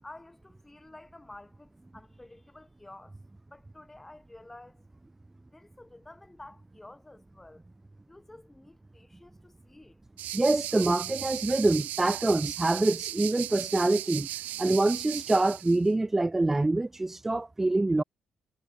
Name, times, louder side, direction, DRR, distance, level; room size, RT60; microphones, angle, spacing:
voice 1, 0.0-3.2 3.5-4.8 5.5-7.6 8.1-10.0, left 2 dB, 10° left, 3.7 m, -51 dB
sound 1, 10.2-15.8, right 14 dB, 85° right, 0.5 m, -37 dB
voice 2, 10.3-14.3 14.6-18.0, right 2 dB, 10° right, 0.5 m, -25 dB
cardioid pair, 150°, 3 cm